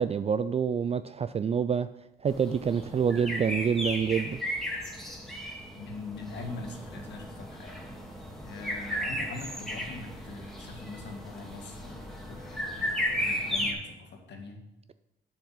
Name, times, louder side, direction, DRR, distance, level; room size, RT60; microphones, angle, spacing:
voice 1, 0.0-1.9 2.2-4.4, right 7 dB, 30° right, 12 dB, 0.3 m, -27 dB
sound 1, 2.3-13.7, equal, ahead, 1.9 m, -35 dB
voice 2, 5.8-7.8 8.4-14.6, left 3 dB, 60° left, 3 dB, 2.2 m, -42 dB
8.4 x 7.1 x 5.7 m, 0.89 s
cardioid pair, 90°, 20 cm